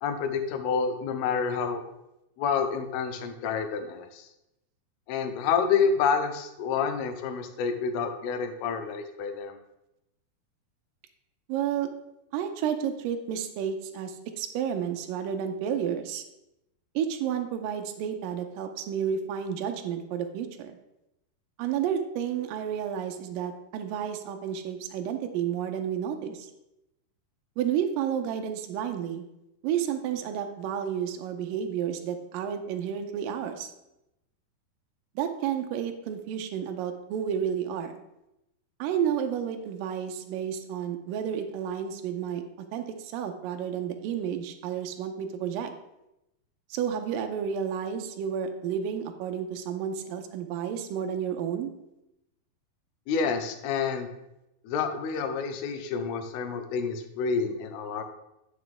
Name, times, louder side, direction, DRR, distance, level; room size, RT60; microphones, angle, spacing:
voice 1, 0.0-1.8 2.4-4.3 5.1-9.6 53.1-54.1 54.6-58.0, left 6 dB, 85° left, 7 dB, 2.7 m, -28 dB
voice 2, 11.5-11.9 12.3-16.2 17.0-20.8 21.6-26.5 27.6-29.2 29.6-33.7 35.2-37.9 38.8-42.4 42.7-45.7 46.7-51.7, right 8 dB, 85° right, 6 dB, 2.0 m, -31 dB
9.6 x 6.0 x 3.4 m, 0.88 s
omnidirectional pair, 4.5 m